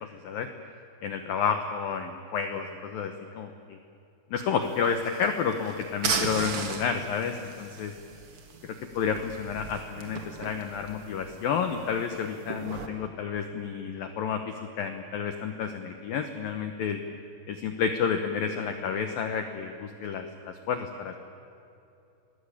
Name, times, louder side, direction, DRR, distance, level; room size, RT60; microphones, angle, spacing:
voice 1, 0.0-0.5 1.0-3.8 4.3-7.9 8.6-17.0 17.5-21.2, left 6 dB, 85° left, 6 dB, 2.0 m, -30 dB
sound 1, 4.6-12.9, right 5 dB, 70° right, 1.3 m, -37 dB
28.0 x 20.5 x 8.6 m, 2.7 s
omnidirectional pair, 5.9 m